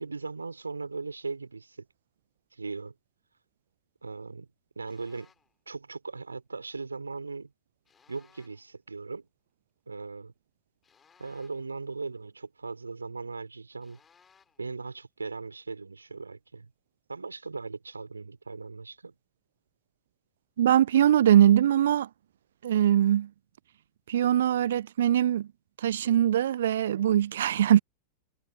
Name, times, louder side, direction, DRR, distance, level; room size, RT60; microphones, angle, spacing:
voice 1, 0.0-1.9 2.5-2.9 4.0-4.5 4.7-5.3 5.7-7.5 8.1-9.3 9.9-10.3 11.2-14.0 14.6-16.7 17.1-19.1, right 4 dB, 80° right, 3.3 m, -38 dB
sound 1, 4.9-5.5 7.8-8.7 10.8-11.8 13.8-14.7, left 6 dB, 20° left, 5.0 m, -63 dB
voice 2, 20.6-22.1 22.6-23.3 24.1-25.5 25.8-27.8, right 11 dB, 60° right, 0.3 m, -22 dB
figure-of-eight pair, 90°, 0 cm